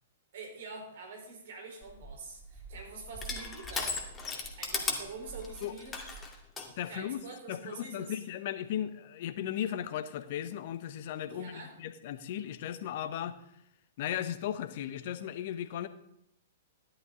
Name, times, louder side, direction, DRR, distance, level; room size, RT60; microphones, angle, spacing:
voice 1, 0.3-4.0 4.6-6.0 6.8-8.2 11.3-11.8, right 3 dB, 60° right, 2 dB, 4.0 m, -45 dB
Crushing, 1.8-6.7, left 3 dB, 15° left, 2.3 m, -38 dB
voice 2, 6.8-7.2 7.5-11.5 11.8-13.4 14.0-15.9, left 10 dB, 55° left, 12 dB, 1.0 m, -36 dB
13.5 x 11.5 x 3.8 m, 0.75 s
figure-of-eight pair, 110°, 0 cm